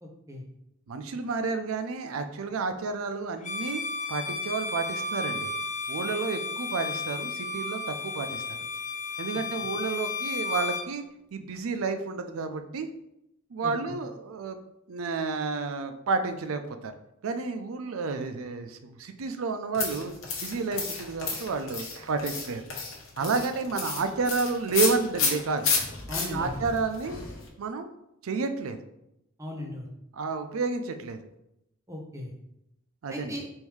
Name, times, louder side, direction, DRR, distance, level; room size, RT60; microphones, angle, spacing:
voice 1, 0.0-0.4 13.6-13.7 23.2-23.3 26.1-26.5 29.4-29.9 31.9-32.3 33.1-33.5, left 1 dB, 15° right, 0 dB, 0.7 m, -37 dB
voice 2, 0.9-3.8 4.1-5.5 5.9-8.6 9.2-11.0 11.3-12.9 13.5-14.6 14.9-16.9 17.2-20.1 20.4-22.6 23.2-25.7 26.2-27.2 27.6-27.9 28.2-28.8 30.1-31.3 33.0-33.3, right 4 dB, 75° right, 8 dB, 0.4 m, -30 dB
Bowed string instrument, 3.4-10.9, left 3 dB, 35° left, 0.5 m, -33 dB
sound 1, 19.7-27.5, left 4 dB, 70° left, 1.0 m, -31 dB
3.5 x 2.6 x 4.6 m, 0.84 s
head